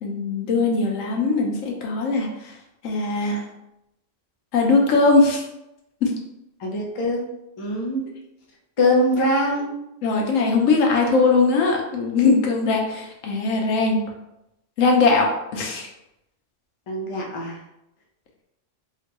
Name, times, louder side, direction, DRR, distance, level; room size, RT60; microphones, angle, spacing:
voice 1, 0.0-2.5 2.8-3.4 4.5-5.4 6.0-6.1 10.0-14.0 14.8-15.9, left 3 dB, 85° left, 1 dB, 1.0 m, -20 dB
voice 2, 6.6-7.3 7.6-8.0 8.8-9.7 16.9-17.6, left 1 dB, 35° left, -2 dB, 0.5 m, -22 dB
3.7 x 2.1 x 2.9 m, 0.87 s
omnidirectional pair, 1.3 m